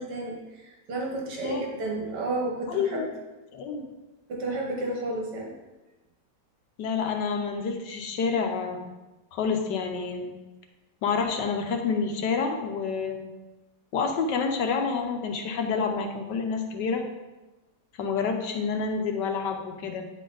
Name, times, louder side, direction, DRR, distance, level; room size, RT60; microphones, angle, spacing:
voice 1, 0.0-3.1 4.3-5.5, right 2 dB, 75° right, -1 dB, 1.8 m, -32 dB
voice 2, 2.7-3.1 3.5-3.9 6.8-8.8 9.3-10.3 11.0-13.2 13.9-17.0 18.0-20.0, left 5 dB, 80° left, 4 dB, 1.5 m, -28 dB
9.0 x 4.4 x 3.9 m, 1.1 s
omnidirectional pair, 1.8 m